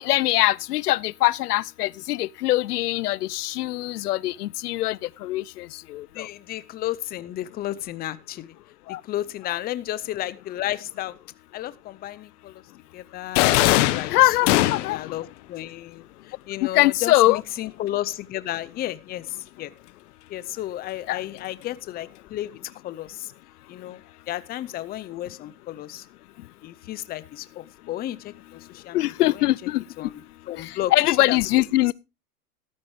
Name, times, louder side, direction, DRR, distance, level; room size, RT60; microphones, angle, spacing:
voice 1, 0.0-6.3 8.9-9.0 14.1-15.0 16.7-17.4 21.1-21.2 28.9-29.8 30.6-31.9, left 16 dB, 90° left, 0.5 m, -22 dB
voice 2, 6.1-8.6 8.9-11.2 11.5-12.6 12.9-19.7 20.3-22.6 22.8-23.3 23.7-24.0 24.3-26.1 26.6-29.5 30.0-30.2 30.5-30.9 31.3-31.4, left 14 dB, 20° left, 0.6 m, -33 dB
sound 1, 13.4-15.1, left 17 dB, 55° left, 1.1 m, -20 dB
14.0 x 12.0 x 3.2 m
hypercardioid pair, 125°, 45 cm